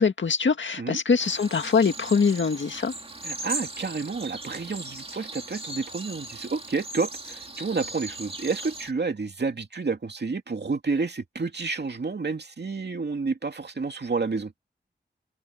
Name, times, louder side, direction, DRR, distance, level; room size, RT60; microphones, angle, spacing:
voice 1, 0.0-2.9, left 5 dB, 75° left, 1.8 m, -23 dB
sound 1, 1.2-8.9, right 2 dB, 30° right, 2.4 m, -38 dB
voice 2, 3.2-14.5, right 4 dB, 60° right, 2.5 m, -30 dB
wide cardioid pair, 70°, 19 cm